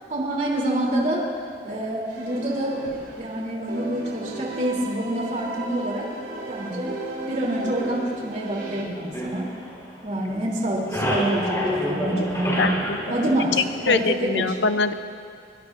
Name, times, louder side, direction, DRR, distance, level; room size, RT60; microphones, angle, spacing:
voice 1, 0.1-1.3 1.6-2.8 3.1-6.1 6.5-7.0 7.3-9.5 10.0-14.5, right 1 dB, 45° right, -3 dB, 3.3 m, -27 dB
sound 1, 2.1-3.4 3.7-8.8, right 2 dB, 70° right, 3.5 m, -35 dB
sound 2, 9.1-10.3 10.6-14.3, equal, 15° left, 4.2 m, -28 dB
voice 2, 13.6-14.9, left 4 dB, 80° left, 10 dB, 0.7 m, -23 dB
24.0 x 23.0 x 2.6 m, 2.4 s
head